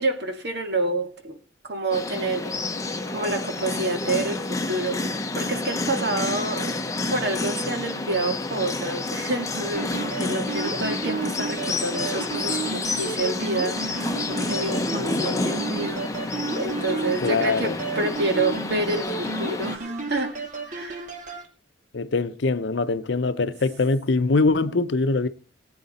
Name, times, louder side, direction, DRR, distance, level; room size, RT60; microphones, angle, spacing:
voice 1, 0.0-1.4 1.6-2.6 3.1-6.7 7.1-21.1 24.7-24.8, right 2 dB, 60° right, 1.9 m, -28 dB
sound 1, 1.9-19.8, left 2 dB, 15° left, 0.8 m, -29 dB
sound 2, 9.7-21.5, right 3 dB, 40° right, 1.8 m, -33 dB
voice 2, 17.2-17.8 21.9-25.3, left 3 dB, 70° left, 0.7 m, -23 dB
18.5 x 8.8 x 4.2 m
head